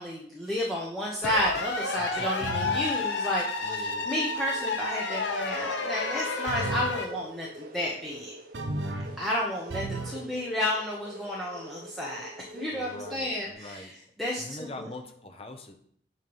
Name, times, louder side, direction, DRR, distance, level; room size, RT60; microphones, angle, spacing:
voice 1, 0.0-8.3 9.2-13.9 14.2-14.9, left 1 dB, ahead, -5 dB, 0.7 m, -32 dB
sound 1, 1.2-7.1, left 3 dB, 80° left, 0.9 m, -31 dB
voice 2, 2.0-2.5 3.6-4.1 12.7-13.9 14.4-15.7, left 2 dB, 30° left, 6 dB, 0.7 m, -43 dB
sound 2, 2.4-2.9 6.5-7.0 8.5-9.2 9.7-10.2, right 2 dB, 85° right, 0.8 m, -33 dB
sound 3, 3.8-13.5, right 1 dB, 50° right, 0.6 m, -46 dB
8.0 x 3.0 x 5.4 m, 0.64 s
head